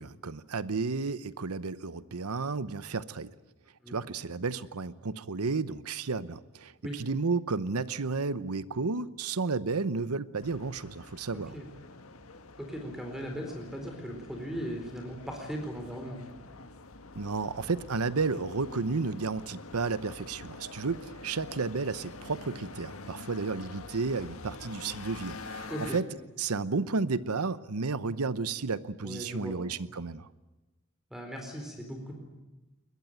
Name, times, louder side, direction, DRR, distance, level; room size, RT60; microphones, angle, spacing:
voice 1, 0.0-3.3 3.9-11.5 17.1-26.1 26.4-30.3, right 4 dB, 85° right, 16 dB, 0.9 m, -32 dB
sound 1, 10.4-26.0, left 3 dB, 70° left, 1.7 m, -46 dB
voice 2, 12.6-16.2 25.7-26.0 29.0-29.6 31.1-32.1, equal, ahead, 3 dB, 4.3 m, -38 dB
22.5 x 20.5 x 9.3 m, 1.1 s
head